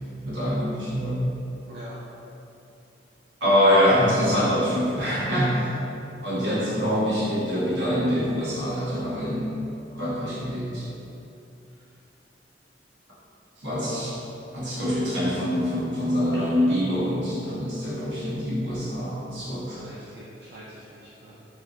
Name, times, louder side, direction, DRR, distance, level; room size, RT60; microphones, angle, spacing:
voice 1, 0.2-1.2 3.4-5.7 6.2-9.6 9.9-10.9 13.6-14.1 14.5-19.8, equal, 80° right, -9 dB, 1.3 m, -24 dB
voice 2, 1.7-2.0 13.6-14.1 16.3-16.6 19.7-21.5, equal, 65° right, -7 dB, 0.4 m, -42 dB
3.3 x 2.7 x 3.8 m, 2.8 s
head